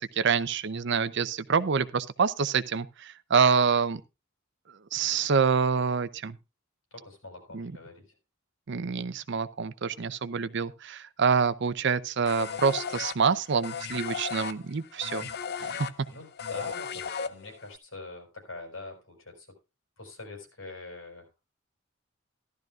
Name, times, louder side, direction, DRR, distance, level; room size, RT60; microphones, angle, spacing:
voice 1, 0.0-4.0 4.9-6.4 7.5-7.7 8.7-15.3 15.6-15.9, right 5 dB, 60° right, 0.6 m, -26 dB
voice 2, 6.9-8.1 16.1-19.5 20.0-21.4, left 2 dB, 80° left, 5.3 m, -44 dB
sound 1, 12.3-17.8, left 6 dB, 55° left, 0.6 m, -35 dB
14.5 x 12.0 x 2.4 m
head